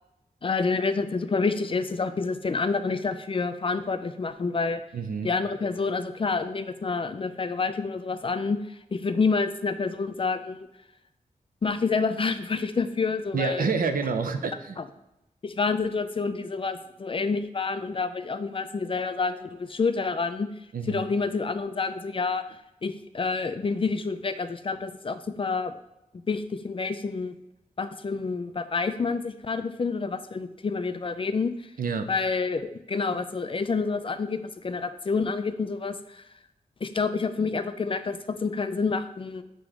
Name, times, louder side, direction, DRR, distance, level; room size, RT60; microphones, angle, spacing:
voice 1, 0.4-4.8 5.2-10.6 11.6-13.7 14.8-14.9 15.4-20.5 20.9-25.7 26.3-27.4 27.8-31.5 32.1-36.2 36.8-39.4, left 4 dB, 40° left, 10 dB, 0.4 m, -28 dB
voice 2, 4.9-5.3 13.3-14.8 20.7-21.0 31.8-32.1, right 5 dB, 80° right, 7 dB, 0.6 m, -28 dB
7.6 x 3.0 x 4.9 m, 0.89 s
wide cardioid pair, 115°, 15 cm